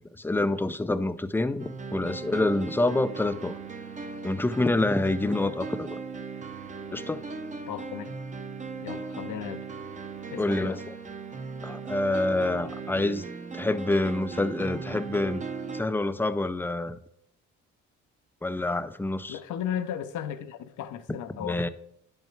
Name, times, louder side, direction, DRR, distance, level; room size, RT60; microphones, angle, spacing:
voice 1, 0.2-3.6 4.2-6.0 6.9-7.2 10.4-10.9 11.6-13.2 13.5-15.4 15.7-17.0 18.4-19.4 21.4-21.7, left 2 dB, 5° left, 0.4 m, -27 dB
sound 1, 1.6-15.8, right 4 dB, 25° right, 0.7 m, -38 dB
voice 2, 7.7-8.2 8.8-9.6 10.3-10.8 19.3-21.6, left 9 dB, 80° left, 0.7 m, -35 dB
10.0 x 5.4 x 4.5 m
cardioid pair, 90°, 30 cm